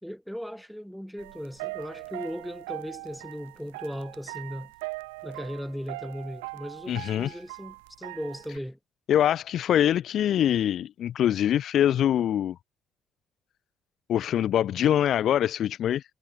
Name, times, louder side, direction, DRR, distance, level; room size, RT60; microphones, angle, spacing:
voice 1, 0.0-4.7 5.2-8.8, equal, ahead, 1.5 m, -37 dB
sound 1, 1.2-8.6, right 26 dB, 70° right, 1.1 m, -41 dB
voice 2, 6.9-7.3 9.1-12.6 14.1-16.0, left 10 dB, 55° left, 0.6 m, -24 dB
figure-of-eight pair, 45°, 0 cm